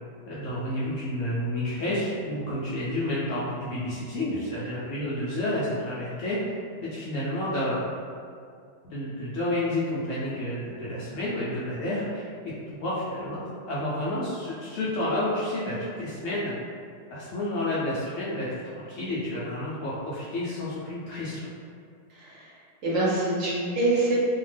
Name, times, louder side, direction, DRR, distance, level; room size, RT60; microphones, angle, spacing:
voice 1, 0.3-6.4 6.8-7.9 8.8-13.4 13.7-16.5 17.1-21.5, left 1 dB, 70° left, -8 dB, 0.8 m, -30 dB
voice 2, 22.1-24.1, right 2 dB, 60° right, -8 dB, 1.0 m, -26 dB
2.7 x 2.1 x 3.2 m, 2.3 s
omnidirectional pair, 1.7 m